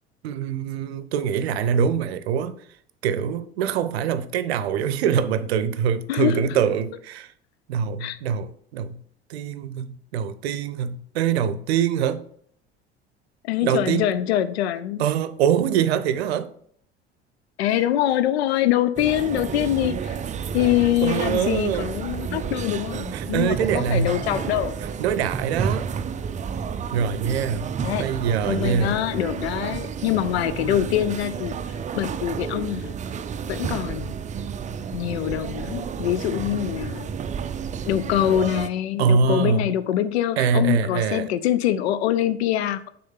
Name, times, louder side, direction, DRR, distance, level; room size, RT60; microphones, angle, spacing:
voice 1, 0.2-2.5 3.0-7.3 7.7-9.0 9.3-12.2 13.6-14.1 15.0-16.5 21.0-21.9 23.1-24.2 25.0-25.9 26.9-27.7 28.0-29.0 39.0-39.7 40.4-41.3, right 7 dB, 70° right, 0.6 m, -24 dB
voice 2, 6.1-6.6 8.0-8.2 13.4-15.0 17.6-20.2 20.5-24.8 27.8-28.1 28.5-32.9 33.5-34.2 34.9-37.1 37.9-42.9, left 12 dB, 75° left, 0.5 m, -24 dB
sound 1, 19.0-38.7, right 7 dB, 25° right, 0.5 m, -31 dB
6.3 x 4.1 x 5.6 m
figure-of-eight pair, 65°, 33 cm